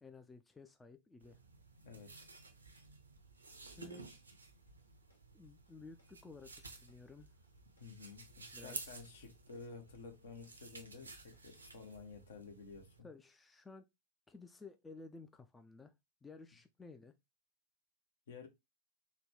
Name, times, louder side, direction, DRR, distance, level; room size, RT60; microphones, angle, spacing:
voice 1, 0.0-1.4 3.6-4.0 5.3-7.3 8.5-9.0 13.0-13.8 14.3-15.9 16.2-17.1, left 3 dB, 10° left, 0.3 m, -55 dB
sound 1, 1.2-13.0, right 3 dB, 80° right, 0.5 m, -54 dB
voice 2, 1.8-2.3 7.8-13.1 18.3-18.5, left 4 dB, 60° left, 0.8 m, -52 dB
sound 2, 4.7-5.2 5.4-6.1 6.3-7.0 7.2-7.9 8.1-11.8, left 2 dB, 75° left, 1.1 m, -68 dB
3.9 x 2.1 x 3.3 m
figure-of-eight pair, 90°, 0 cm